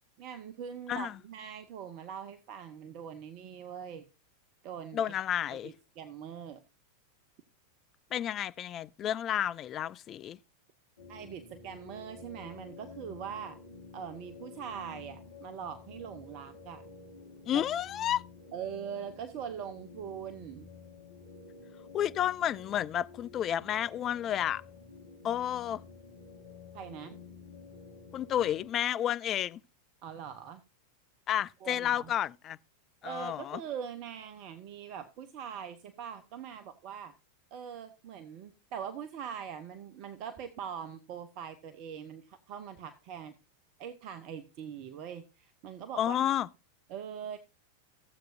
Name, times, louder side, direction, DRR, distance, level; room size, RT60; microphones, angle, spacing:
voice 1, 0.2-4.1 4.6-5.1 5.5-6.6 11.1-13.6 13.9-16.8 17.5-17.6 18.5-20.7 26.7-27.1 30.0-30.6 31.6-32.1 33.0-37.1 37.5-43.3 43.8-46.2 46.9-47.4, right 8 dB, 40° right, 0.8 m, -42 dB
voice 2, 4.9-5.7 8.1-10.4 17.5-18.2 21.9-24.6 25.2-25.8 28.1-29.6 31.3-32.6 33.0-33.6 46.0-46.5, left 10 dB, 30° left, 0.4 m, -31 dB
sound 1, 11.0-28.7, left 4 dB, 65° left, 1.8 m, -51 dB
15.5 x 7.7 x 2.6 m
figure-of-eight pair, 90°, 0 cm